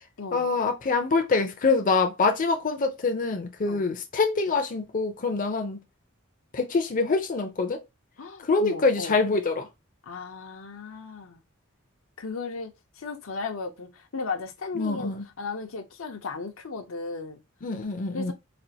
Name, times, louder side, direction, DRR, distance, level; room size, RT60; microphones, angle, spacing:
voice 1, 0.3-5.8 6.5-7.8 8.4-9.7 14.7-15.2 17.6-18.3, left 4 dB, 40° left, 0.5 m, -25 dB
voice 2, 8.2-9.2 10.1-11.4 12.2-17.4 18.1-18.3, left 4 dB, 80° left, 0.7 m, -36 dB
4.2 x 2.5 x 2.7 m
head